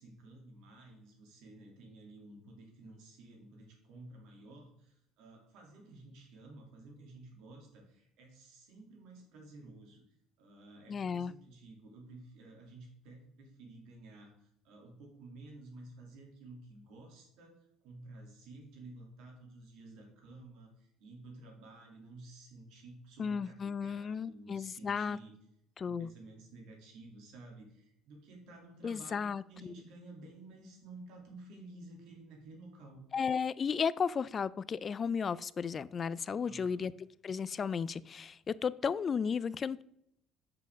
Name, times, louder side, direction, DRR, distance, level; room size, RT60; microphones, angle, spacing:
voice 1, 0.0-10.0 10.4-25.4 25.8-33.0 36.5-36.8, right 2 dB, 80° right, 1 dB, 2.5 m, -53 dB
voice 2, 10.9-11.3 23.2-25.2 25.8-26.1 28.8-29.7 33.1-36.9 37.2-39.8, left 6 dB, 35° left, 19 dB, 0.3 m, -34 dB
8.1 x 6.8 x 3.5 m, 0.75 s
cardioid pair, 115°, 0 cm